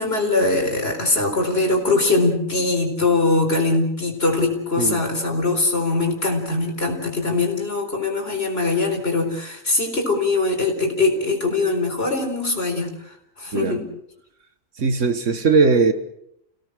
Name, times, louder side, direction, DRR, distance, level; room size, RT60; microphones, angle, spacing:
voice 1, 0.0-12.9 13.4-13.8, left 3 dB, 45° left, 3 dB, 4.6 m, -22 dB
voice 2, 14.8-15.9, right 4 dB, 65° right, 9 dB, 1.8 m, -19 dB
29.5 x 17.5 x 6.4 m, 0.76 s
omnidirectional pair, 1.4 m